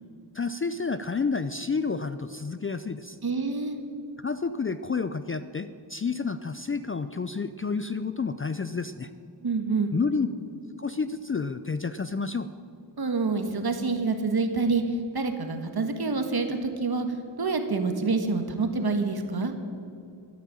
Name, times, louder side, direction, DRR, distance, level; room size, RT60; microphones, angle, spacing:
voice 1, 0.3-3.2 4.2-9.1 9.9-10.3 10.8-12.5, left 4 dB, 30° left, 12 dB, 0.4 m, -30 dB
voice 2, 3.2-3.8 9.4-9.9 13.0-17.1 17.4-19.5, right 4 dB, 50° right, 6 dB, 1.6 m, -27 dB
13.5 x 9.2 x 8.8 m, 2.5 s
wide cardioid pair, 110°, 46 cm